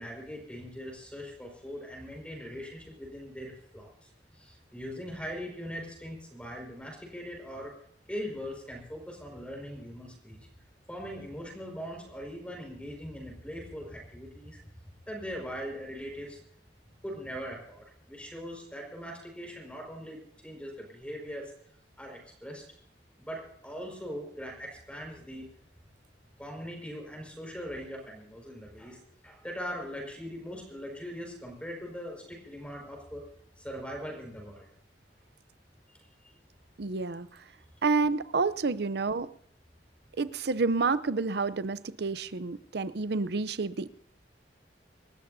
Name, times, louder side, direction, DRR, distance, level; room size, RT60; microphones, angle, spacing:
voice 1, 0.0-4.1 4.4-7.7 8.1-10.4 10.9-14.6 15.1-16.4 17.0-21.5 22.0-22.6 23.2-25.5 26.4-33.2 33.6-34.7 36.2-36.3, equal, 5° left, 0 dB, 5.2 m, -41 dB
voice 2, 36.8-37.3 37.8-39.3 40.2-43.9, right 4 dB, 65° right, 15 dB, 0.7 m, -29 dB
28.0 x 13.5 x 2.7 m, 0.69 s
head